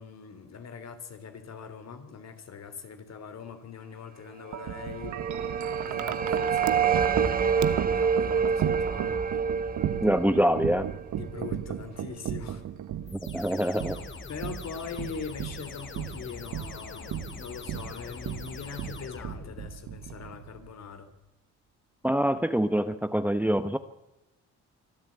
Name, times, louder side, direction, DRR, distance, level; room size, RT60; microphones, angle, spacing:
voice 1, 0.0-5.2 5.8-9.3 11.2-12.7 14.3-21.1, left 6 dB, 60° left, 9 dB, 3.3 m, -42 dB
Wind chime, 4.5-20.7, right 10 dB, 75° right, 1.4 m, -35 dB
sound 1, 4.7-11.7, right 6 dB, 30° right, 1.1 m, -28 dB
voice 2, 10.0-10.9 13.1-14.0 22.0-23.8, equal, 5° right, 11 dB, 1.1 m, -25 dB
sound 2, 13.1-19.9, left 5 dB, 40° left, 2.7 m, -43 dB
24.5 x 12.5 x 8.7 m, 0.98 s
cardioid pair, 90°, 30 cm